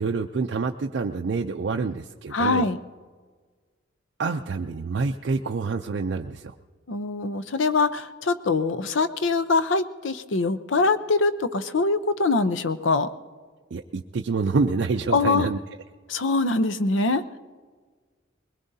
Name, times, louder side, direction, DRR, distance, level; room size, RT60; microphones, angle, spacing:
voice 1, 0.0-2.7 4.2-6.5 13.7-15.6, right 4 dB, 60° right, 3 dB, 0.4 m, -27 dB
voice 2, 2.3-2.8 6.9-13.1 15.1-15.5 16.1-17.2, left 3 dB, 75° left, 12 dB, 0.7 m, -23 dB
21.5 x 20.0 x 2.7 m, 1.5 s
head